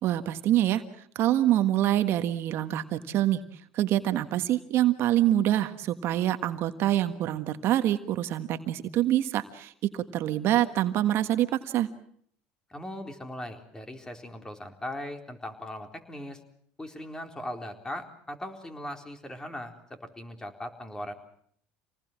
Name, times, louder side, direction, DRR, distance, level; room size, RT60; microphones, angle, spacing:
voice 1, 0.0-0.8 1.1-3.4 3.7-11.9, right 13 dB, 60° right, 9 dB, 1.5 m, -25 dB
voice 2, 12.7-16.4 16.8-21.1, left 1 dB, 15° left, 5 dB, 4.1 m, -39 dB
27.0 x 19.5 x 7.5 m, 0.64 s
supercardioid pair, 95°, 5 cm